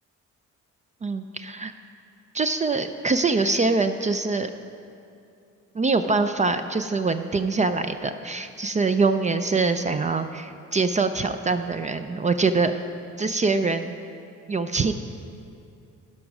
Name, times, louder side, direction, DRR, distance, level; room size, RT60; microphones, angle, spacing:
voice 1, 1.0-1.7 2.3-4.5 5.7-12.7 13.2-14.0 14.5-14.9, right 3 dB, 25° right, 9 dB, 0.4 m, -24 dB
11.5 x 5.3 x 6.1 m, 2.5 s
cardioid pair, 90°, 30 cm